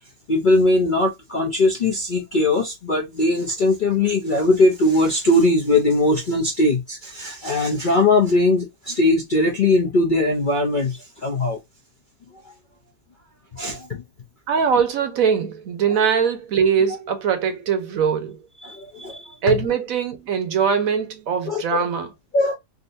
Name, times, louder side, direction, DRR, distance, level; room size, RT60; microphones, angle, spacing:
voice 1, 0.3-11.6 13.5-14.0 18.6-19.4 21.5-21.8 22.3-22.5, left 2 dB, 50° left, 0.6 m, -20 dB
voice 2, 14.5-18.4 19.4-22.1, right 7 dB, 65° right, 1.0 m, -21 dB
3.7 x 2.6 x 2.6 m
omnidirectional pair, 1.7 m